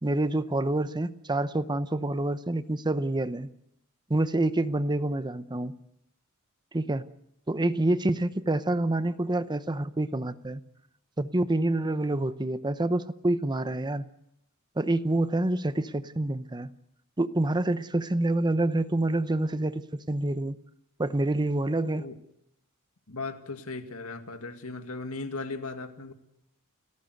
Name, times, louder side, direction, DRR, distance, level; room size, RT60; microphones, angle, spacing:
voice 1, 0.0-3.5 4.1-5.7 6.7-7.1 7.5-10.6 11.2-14.0 14.8-16.7 17.2-20.6 21.0-22.1, right 2 dB, 20° right, 13 dB, 0.8 m, -27 dB
voice 2, 23.1-26.1, left 3 dB, 75° left, 7 dB, 2.1 m, -37 dB
30.0 x 14.0 x 7.9 m, 0.78 s
head